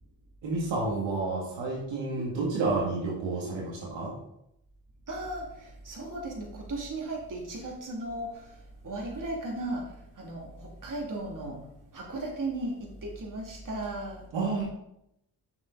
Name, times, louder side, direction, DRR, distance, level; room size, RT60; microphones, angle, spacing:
voice 1, 0.4-4.1 14.3-14.6, right 3 dB, 80° right, -3 dB, 2.0 m, -30 dB
voice 2, 5.1-11.6 11.9-14.3, right 2 dB, 45° right, -1 dB, 2.8 m, -36 dB
7.0 x 6.3 x 4.0 m, 0.79 s
supercardioid pair, 55°, 44 cm